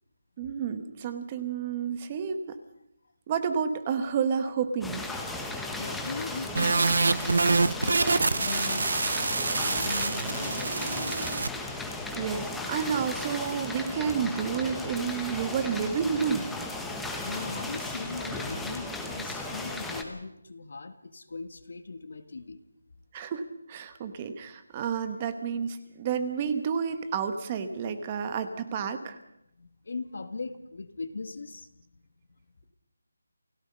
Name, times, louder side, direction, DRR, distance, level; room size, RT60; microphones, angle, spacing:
voice 1, 0.4-2.6 3.3-5.0 12.1-16.5 23.1-29.2, right 7 dB, 15° right, 10 dB, 1.2 m, -30 dB
sound 1, 4.8-20.0, left 2 dB, ahead, 1.1 m, -36 dB
voice 2, 5.5-7.1 7.4-11.5 17.2-22.6 29.6-31.7, left 3 dB, 55° left, 9 dB, 1.7 m, -39 dB
sound 2, 6.6-11.5, right 3 dB, 60° right, 0.8 m, -26 dB
29.0 x 17.0 x 5.5 m, 0.82 s
figure-of-eight pair, 175°, 0 cm